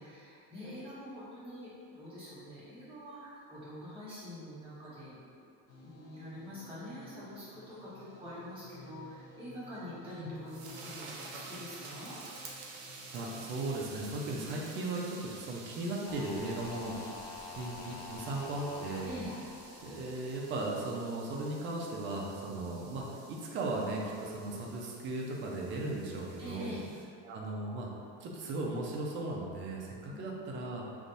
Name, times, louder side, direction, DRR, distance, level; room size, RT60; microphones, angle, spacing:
voice 1, 0.0-1.7 2.0-5.5 5.8-12.2 14.3-14.5 19.0-19.3 26.4-26.8 30.1-30.3, equal, 15° right, -12 dB, 1.4 m, -45 dB
sound 1, 5.7-14.1, left 2 dB, 85° left, 0.9 m, -55 dB
sound 2, 10.3-27.0, right 3 dB, 75° right, 0.7 m, -51 dB
voice 2, 13.1-16.9 17.6-19.2 19.8-26.8 27.2-27.9 28.2-30.8, right 2 dB, 35° right, -2 dB, 0.5 m, -37 dB
sound 3, 16.0-21.2 21.5-21.6, left 4 dB, 35° left, 0.4 m, -47 dB
3.4 x 2.6 x 4.0 m, 2.4 s
cardioid pair, 175°, 32 cm